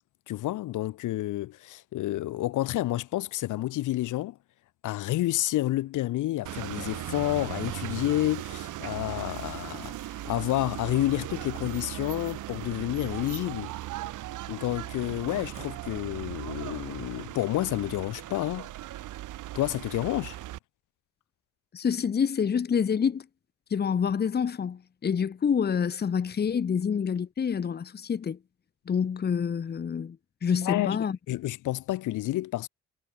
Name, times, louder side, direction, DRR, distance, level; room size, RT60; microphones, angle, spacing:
voice 1, 0.3-4.4 4.8-13.7 14.5-18.7 19.5-20.4 30.6-31.0 31.3-32.7, left 15 dB, 80° left, 1.2 m, -29 dB
sound 1, 6.5-20.6, right 15 dB, 85° right, 2.7 m, -38 dB
voice 2, 21.7-23.3 23.7-28.4 28.9-31.2, left 7 dB, 35° left, 0.9 m, -27 dB
cardioid pair, 90°, 30 cm